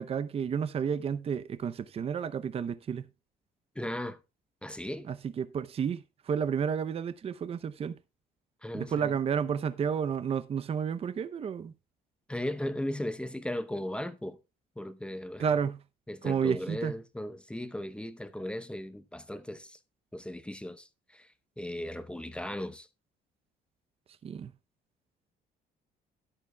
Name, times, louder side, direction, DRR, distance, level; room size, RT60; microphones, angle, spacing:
voice 1, 0.0-3.1 5.1-7.9 8.7-11.7 15.4-15.8 16.2-17.0 24.2-24.5, right 7 dB, 35° right, 0.6 m, -31 dB
voice 2, 3.8-4.2 4.6-5.1 8.6-9.1 12.3-14.4 14.8-15.5 16.1-19.8 20.1-20.9 21.1-21.3 21.6-22.9, left 1 dB, 5° left, 0.8 m, -37 dB
13.0 x 10.5 x 2.2 m
cardioid pair, 110°, 17 cm